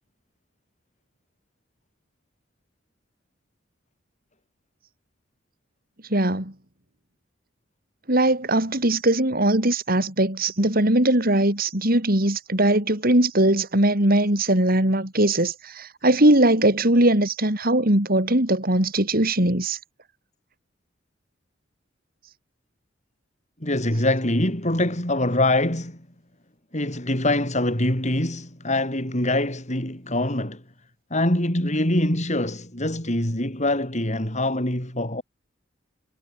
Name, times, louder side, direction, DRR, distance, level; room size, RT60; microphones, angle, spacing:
voice 1, 6.1-6.5 8.1-19.8, right 1 dB, 50° right, 5.5 m, -20 dB
voice 2, 23.6-26.0 26.7-30.6 31.1-35.2, left 1 dB, 40° left, 7.3 m, -24 dB
head